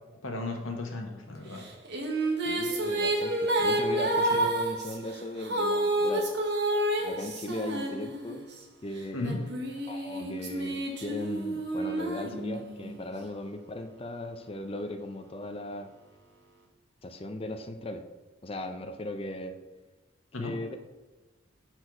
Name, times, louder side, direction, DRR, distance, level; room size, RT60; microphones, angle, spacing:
voice 1, 0.2-1.7 4.3-4.4 9.1-9.4 20.3-20.5, left 2 dB, 90° left, 2 dB, 1.3 m, -35 dB
sound 1, 1.6-8.6 9.2-12.9, right 1 dB, 55° right, 1.1 m, -29 dB
voice 2, 2.4-6.3 7.0-8.4 8.8-9.3 9.9-15.9 17.0-18.0 18.4-19.5 20.4-20.8, left 1 dB, 30° left, 6 dB, 0.6 m, -37 dB
6.2 x 4.5 x 4.9 m, 1.2 s
head